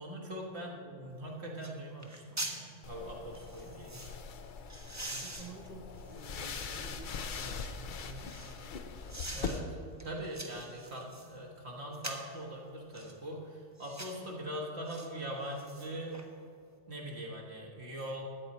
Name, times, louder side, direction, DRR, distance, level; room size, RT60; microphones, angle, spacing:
voice 1, 0.0-4.2 9.3-9.7 10.0-16.2 16.9-18.2, right 1 dB, 55° right, -1 dB, 1.8 m, -42 dB
voice 2, 0.6-1.1 5.1-7.6 8.0-8.4 9.8-10.9, right 3 dB, 30° right, 3 dB, 1.2 m, -51 dB
sound 1, 1.1-1.2 1.6-1.8 2.0-2.6 3.3-4.1 4.7-7.0 7.5-8.6 9.1-9.6 10.0-11.3 11.9-12.3 12.9-13.2 13.8-14.2 14.9-15.1 15.4-16.3 16.6-16.7, right 1 dB, 15° right, 0.8 m, -44 dB
sound 2, 2.8-9.5, left 5 dB, 50° left, 0.6 m, -42 dB
13.5 x 8.6 x 4.2 m, 2.4 s
omnidirectional pair, 1.3 m